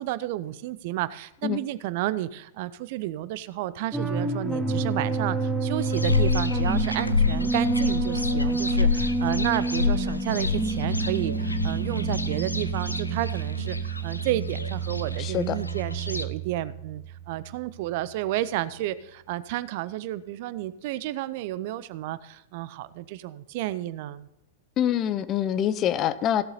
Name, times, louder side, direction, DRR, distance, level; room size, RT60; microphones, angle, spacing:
voice 1, 0.0-24.3, right 14 dB, 45° right, 16 dB, 0.5 m, -31 dB
sound 1, 3.9-17.7, right 4 dB, ahead, 1.4 m, -29 dB
sound 2, 5.8-16.2, left 5 dB, 85° left, 0.6 m, -29 dB
voice 2, 15.2-15.6 24.8-26.4, left 10 dB, 30° left, 14 dB, 0.7 m, -25 dB
16.5 x 7.9 x 4.1 m, 0.86 s
figure-of-eight pair, 95°, 0 cm